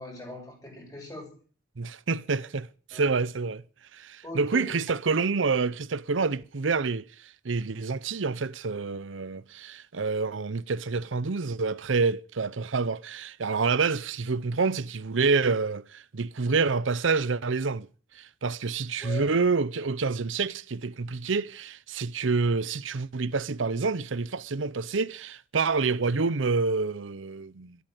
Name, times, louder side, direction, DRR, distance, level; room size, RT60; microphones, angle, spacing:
voice 1, 0.0-1.4 2.9-3.2 4.2-5.0 19.0-19.4, left 1 dB, 20° left, 6.8 m, -41 dB
voice 2, 1.8-3.6 3.9-17.9 18.1-27.8, right 4 dB, 85° right, 0.7 m, -28 dB
13.5 x 11.5 x 9.2 m
head